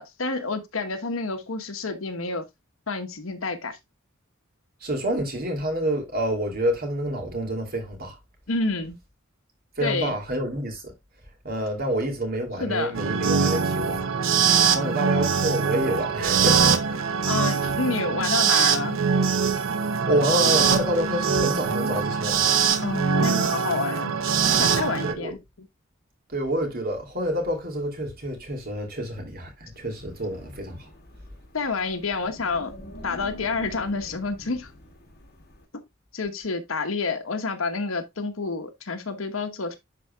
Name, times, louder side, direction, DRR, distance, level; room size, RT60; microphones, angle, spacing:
voice 1, 0.0-2.4 2.9-3.8 8.5-9.0 9.8-10.2 12.6-13.0 17.2-19.0 20.0-20.1 22.8-24.1 24.5-25.4 31.5-32.7 33.0-34.7 36.1-39.8, left 3 dB, 80° left, 1.2 m, -29 dB
voice 2, 4.8-8.2 9.8-10.9 11.4-14.0 14.6-17.1 20.1-22.7 25.0-25.4 26.3-30.9, right 1 dB, 50° right, 2.9 m, -28 dB
sound 1, 12.9-25.1, right 6 dB, 75° right, 0.8 m, -23 dB
Wind, 29.7-35.6, left 1 dB, 55° left, 2.2 m, -45 dB
11.5 x 4.7 x 2.3 m
head